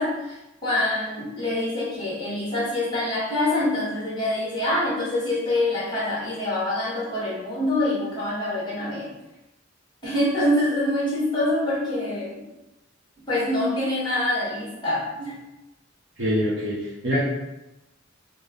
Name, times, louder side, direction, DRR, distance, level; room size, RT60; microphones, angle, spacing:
voice 1, 0.0-9.1 10.0-12.4 13.3-15.3, left 1 dB, 25° left, -7 dB, 1.4 m, -25 dB
voice 2, 16.2-17.2, equal, 85° right, -9 dB, 1.1 m, -25 dB
4.3 x 2.3 x 3.5 m, 0.97 s
head